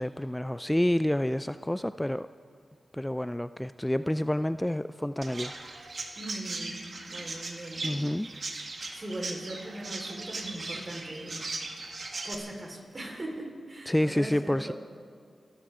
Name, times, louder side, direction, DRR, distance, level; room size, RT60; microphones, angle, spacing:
voice 1, 0.0-2.3 2.9-5.5 7.8-8.3 13.9-14.7, left 1 dB, 10° left, 13 dB, 0.3 m, -28 dB
Chirp tweet, 5.2-12.4, right 3 dB, 60° right, 1.9 m, -38 dB
voice 2, 6.2-8.1 8.9-11.5 12.2-14.7, right 1 dB, 40° right, 0 dB, 4.6 m, -40 dB
30.0 x 12.5 x 3.8 m, 2.2 s
cardioid pair, 50°, 0 cm